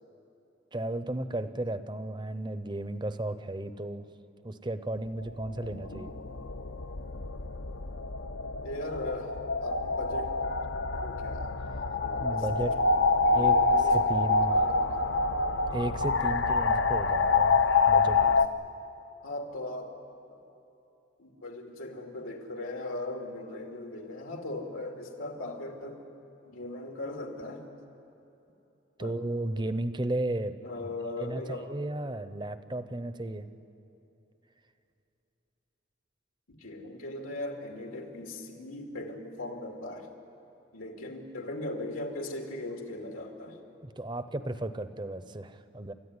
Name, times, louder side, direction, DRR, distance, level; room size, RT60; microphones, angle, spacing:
voice 1, 0.7-4.0 4.4-6.1 12.2-12.8 13.3-13.6 13.9-14.6 15.7-18.2 29.0-30.5 31.2-33.5 43.8-45.9, right 1 dB, 20° right, 12 dB, 0.7 m, -34 dB
sound 1, 5.2-18.5, left 3 dB, 60° left, 0.7 m, -27 dB
voice 2, 5.7-6.0 8.6-10.3 10.9-11.5 11.9-15.3 18.2-18.3 19.2-20.0 20.3-20.4 21.2-26.0 26.4-27.7 29.0-29.2 30.6-31.7 36.5-40.1 40.7-43.6, left 2 dB, 85° left, 2 dB, 2.5 m, -39 dB
29.5 x 14.0 x 9.8 m, 2.9 s
head